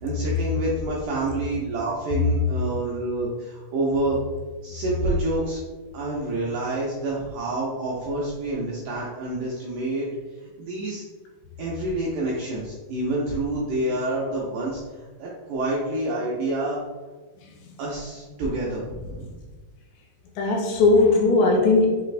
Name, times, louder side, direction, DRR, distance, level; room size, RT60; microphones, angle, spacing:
voice 1, 0.0-4.2 4.6-5.6 5.9-10.1 10.4-11.0 11.6-16.8 17.8-19.4, right 2 dB, 85° right, -5 dB, 1.8 m, -28 dB
voice 2, 20.4-22.0, left 3 dB, 85° left, 1 dB, 2.3 m, -19 dB
5.8 x 3.2 x 2.5 m, 1.3 s
omnidirectional pair, 4.3 m